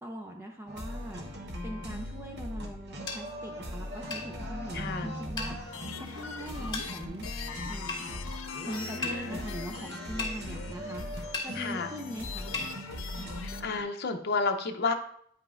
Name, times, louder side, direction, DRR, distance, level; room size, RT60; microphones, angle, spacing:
voice 1, 0.0-1.2 1.6-8.2 8.7-12.6, equal, 10° right, 1 dB, 0.5 m, -41 dB
sound 1, 0.7-13.8, equal, 55° right, 1.0 m, -39 dB
sound 2, 3.1-3.2 4.1-4.3 5.4-5.5 6.7-6.9 7.9-8.0 9.0-9.2 10.2-10.4 11.3-11.5 12.5-12.7, left 3 dB, 20° left, 1.8 m, -34 dB
voice 2, 4.7-5.1 9.2-9.4 11.6-11.9 13.4-14.9, left 4 dB, 50° left, 5 dB, 0.7 m, -31 dB
sound 3, 5.6-13.6, left 6 dB, 90° left, 0.6 m, -44 dB
9.5 x 5.2 x 2.5 m, 0.64 s
head